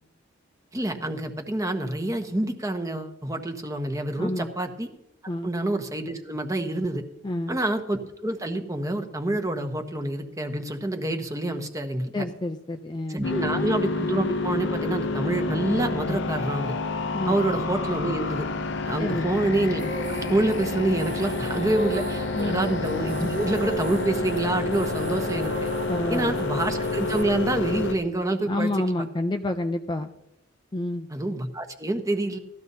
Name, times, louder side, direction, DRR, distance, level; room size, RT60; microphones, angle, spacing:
voice 1, 0.7-4.9 5.4-7.0 7.5-12.2 13.1-16.7 17.3-18.4 18.9-25.5 26.1-28.7 31.1-32.4, right 1 dB, 15° right, 5 dB, 1.0 m, -27 dB
voice 2, 4.2-4.5 5.3-5.5 7.2-7.6 12.1-13.2 17.1-17.4 19.0-19.3 22.4-22.6 25.9-26.4 28.5-30.1 30.7-31.1, left 1 dB, 20° left, 5 dB, 0.5 m, -29 dB
sound 1, 13.2-27.9, left 3 dB, 60° left, 0.7 m, -29 dB
sound 2, 19.8-27.2, right 4 dB, 35° right, 0.5 m, -37 dB
18.0 x 13.5 x 2.8 m, 0.85 s
head